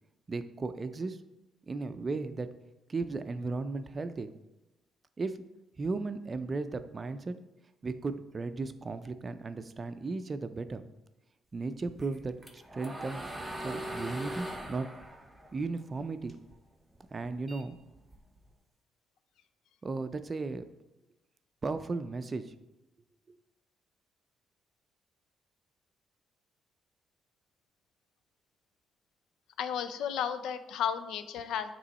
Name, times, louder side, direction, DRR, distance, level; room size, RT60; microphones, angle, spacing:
voice 1, 0.3-1.2 1.7-2.5 2.9-4.3 5.2-5.4 5.8-7.4 7.8-10.8 11.5-13.3 13.6-14.9 15.5-16.3 17.1-17.8 19.8-20.7 21.6-22.5, right 3 dB, 35° right, 10 dB, 0.4 m, -35 dB
sound 1, 12.0-16.5 16.9-18.5, right 1 dB, 10° right, 0.8 m, -41 dB
voice 2, 29.6-31.7, left 8 dB, 85° left, 11 dB, 0.4 m, -33 dB
8.1 x 3.1 x 4.1 m, 0.98 s
cardioid pair, 90°, 0 cm